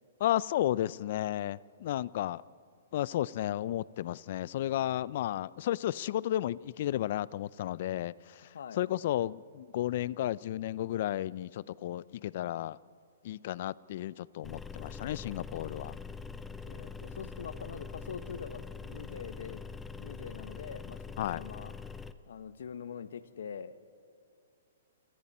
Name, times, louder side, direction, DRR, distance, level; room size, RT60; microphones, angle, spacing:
voice 1, 0.2-2.4 2.9-12.8 13.2-16.0 21.2-21.4, left 13 dB, 50° left, 0.5 m, -33 dB
sound 1, 14.4-22.1, left 5 dB, 5° left, 0.7 m, -43 dB
voice 2, 16.6-19.6 20.0-21.0 21.3-21.7 22.3-23.7, left 7 dB, 75° left, 1.3 m, -43 dB
29.0 x 25.0 x 4.3 m
hypercardioid pair, 150°, 0 cm